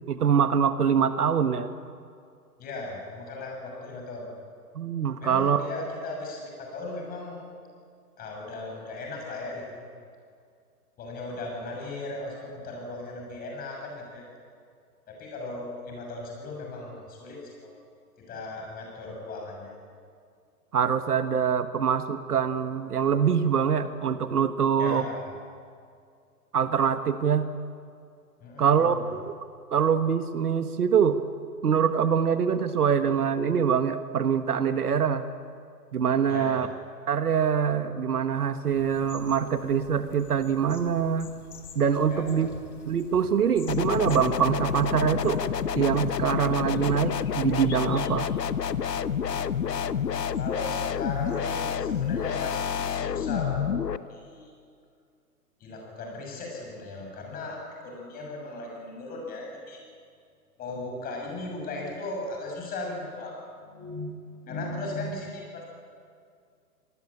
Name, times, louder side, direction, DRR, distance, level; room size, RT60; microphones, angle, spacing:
voice 1, 0.1-1.7 4.7-5.6 20.7-25.0 26.5-27.5 28.6-29.3 29.7-31.2 31.6-35.3 35.9-36.7 37.1-41.3 41.7-42.5 42.9-45.4 45.7-48.3, right 7 dB, 65° right, 11 dB, 1.5 m, -24 dB
voice 2, 2.6-4.3 5.2-7.4 8.2-9.9 11.0-14.2 15.1-17.7 18.2-19.7 24.8-25.6 28.4-29.1 36.3-36.7 42.1-42.5 50.4-53.8 54.1-54.5 55.6-57.6 57.8-59.8 60.6-65.6, left 2 dB, 20° left, 0 dB, 6.9 m, -37 dB
sound 1, 38.7-52.5, left 5 dB, 60° left, 4.0 m, -49 dB
sound 2, 43.7-54.0, left 7 dB, 80° left, 1.1 m, -29 dB
26.5 x 19.5 x 8.7 m, 2.3 s
figure-of-eight pair, 135°, 48 cm